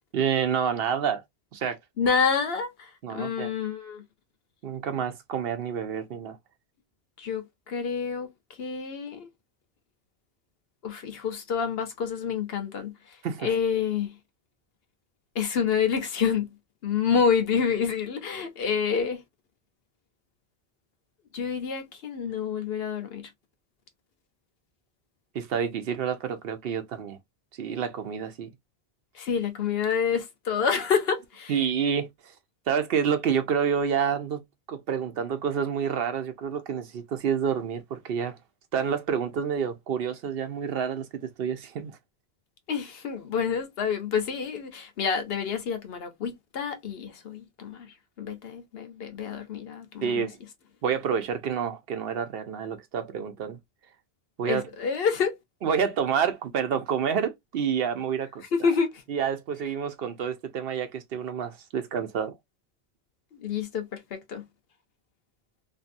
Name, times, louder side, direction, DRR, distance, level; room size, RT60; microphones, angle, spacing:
voice 1, 0.1-1.2 1.5-1.8 3.0-3.5 4.6-6.4 13.2-13.5 25.3-27.2 27.6-28.5 31.5-32.1 32.7-34.4 34.7-38.4 38.7-42.0 50.0-50.4 50.8-53.6 54.4-54.6 55.6-58.7 59.1-62.3, right 7 dB, 65° right, 0.8 m, -28 dB
voice 2, 2.0-4.0 7.2-8.3 8.6-9.3 10.8-12.9 13.4-14.1 15.4-16.5 16.8-19.2 21.3-23.3 29.2-31.5 42.7-47.9 48.2-50.3 54.5-55.3 58.5-58.9 63.4-64.4, left 6 dB, 70° left, 0.9 m, -28 dB
2.6 x 2.6 x 2.4 m
omnidirectional pair, 1.1 m